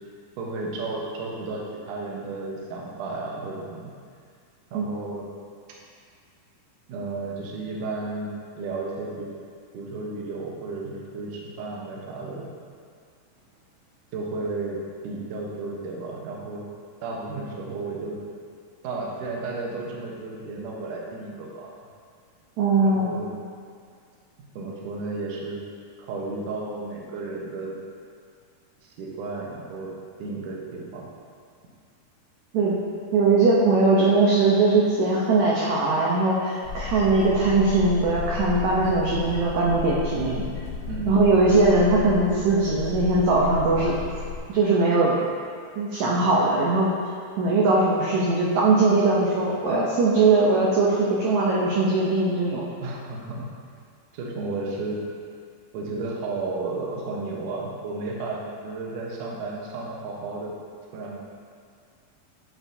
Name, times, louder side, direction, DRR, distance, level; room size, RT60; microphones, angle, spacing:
voice 1, 0.4-3.9 4.7-5.3 6.9-8.3 8.6-9.3 9.7-12.5 14.1-14.8 15.0-16.7 17.0-18.2 18.8-21.7 22.8-23.3 24.6-25.6 26.0-27.7 28.8-29.9 30.2-31.0 40.9-41.3 52.8-53.5 54.1-55.0 55.7-60.5 60.9-61.2, right 3 dB, 70° right, -2 dB, 2.2 m, -33 dB
voice 2, 22.6-23.1 32.5-32.7 33.1-40.4 41.1-43.9 44.5-45.1 45.7-46.9 47.4-52.6, right 3 dB, 85° right, -5 dB, 1.6 m, -20 dB
sound 1, 36.6-44.4, left 5 dB, 90° left, 1.6 m, -33 dB
8.3 x 8.1 x 2.7 m, 2.2 s
omnidirectional pair, 4.4 m